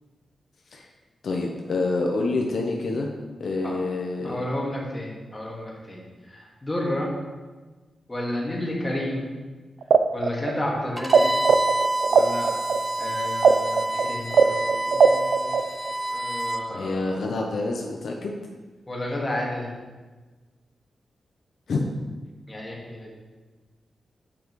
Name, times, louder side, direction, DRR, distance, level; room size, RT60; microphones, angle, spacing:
voice 1, 1.2-3.1 3.4-4.5 16.7-18.4 21.7-21.8, left 3 dB, 70° left, 0 dB, 0.7 m, -27 dB
voice 2, 4.2-6.0 6.3-7.1 8.1-9.2 10.1-11.3 12.1-12.5 13.0-15.5 16.1-17.1 18.9-19.7 22.5-23.1, left 1 dB, 20° left, -3 dB, 1.8 m, -31 dB
sound 1, 9.8-11.2 11.4-15.9, right 6 dB, 80° right, 0.3 m, -18 dB
Bowed string instrument, 11.0-16.6, right 1 dB, 10° right, 0.6 m, -28 dB
8.6 x 5.1 x 3.1 m, 1.3 s
wide cardioid pair, 95°, 0 cm